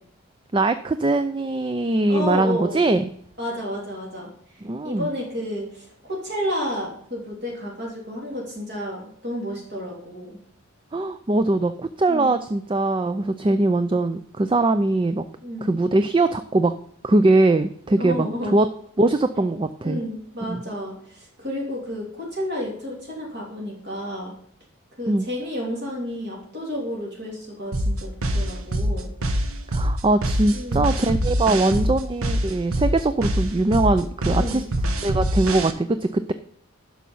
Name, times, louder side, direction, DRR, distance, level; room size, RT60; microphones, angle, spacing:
voice 1, 0.5-3.1 4.6-5.1 10.9-15.2 15.6-16.7 17.0-18.7 19.0-20.0 20.5-20.7 25.1-25.2 29.7-34.6 35.0-36.3, right 2 dB, 25° right, 10 dB, 0.3 m, -21 dB
voice 2, 2.1-2.8 3.4-4.3 4.8-10.4 12.1-12.4 15.4-15.7 18.0-18.5 19.8-24.3 25.0-29.1 30.5-30.8 31.7-31.9 34.3-34.7, equal, 50° right, -3 dB, 3.0 m, -31 dB
sound 1, 27.7-35.7, equal, 75° right, 1.1 m, -24 dB
11.0 x 6.2 x 5.4 m, 0.66 s
head